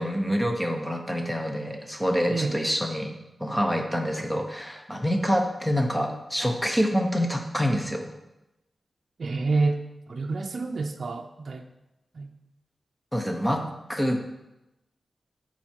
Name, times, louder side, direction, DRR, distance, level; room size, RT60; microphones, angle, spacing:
voice 1, 0.0-3.1 3.4-8.1 13.1-14.2, equal, 5° left, 3 dB, 1.0 m, -26 dB
voice 2, 9.2-9.8 10.1-11.6 12.1-12.3, right 3 dB, 60° right, 4 dB, 0.6 m, -28 dB
12.5 x 4.3 x 4.6 m, 0.95 s
wide cardioid pair, 130°, 0 cm